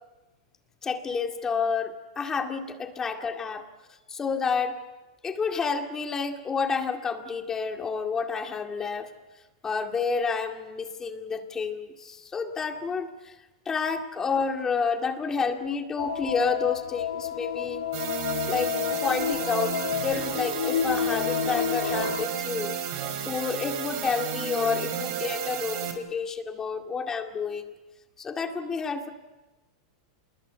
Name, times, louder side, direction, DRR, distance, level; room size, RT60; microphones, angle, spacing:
voice 1, 0.8-3.7 4.1-4.8 5.2-9.1 9.6-13.3 13.7-17.9 18.5-18.7 19.0-22.8 23.3-27.7 28.2-29.1, left 5 dB, 20° left, 5 dB, 2.1 m, -29 dB
sound 1, 16.0-22.3, left 9 dB, 80° left, 0.9 m, -30 dB
sound 2, 17.9-25.9, right 7 dB, 55° right, 4.4 m, -32 dB
27.5 x 21.0 x 8.1 m, 1.1 s
hypercardioid pair, 115°, 3 cm